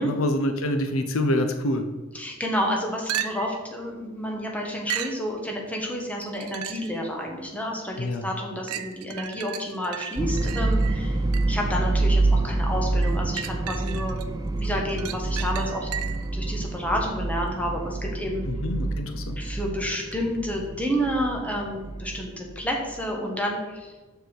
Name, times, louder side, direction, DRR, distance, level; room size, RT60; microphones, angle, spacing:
voice 1, 0.0-1.8 8.0-8.3 18.5-19.4, left 1 dB, 65° left, 6 dB, 0.7 m, -26 dB
voice 2, 2.1-11.2 11.5-14.2 14.5-15.9 16.3-18.4 19.4-23.9, equal, 5° left, 0 dB, 1.2 m, -30 dB
sound 1, 3.1-3.7 4.9-5.2 6.2-7.0 7.5-7.6 8.7-11.7 13.0-14.3 14.6-16.3 20.1-20.2, right 10 dB, 85° right, 0.5 m, -35 dB
sound 2, 10.2-23.1, right 2 dB, 15° right, 0.3 m, -27 dB
7.1 x 6.8 x 4.6 m, 1.3 s
head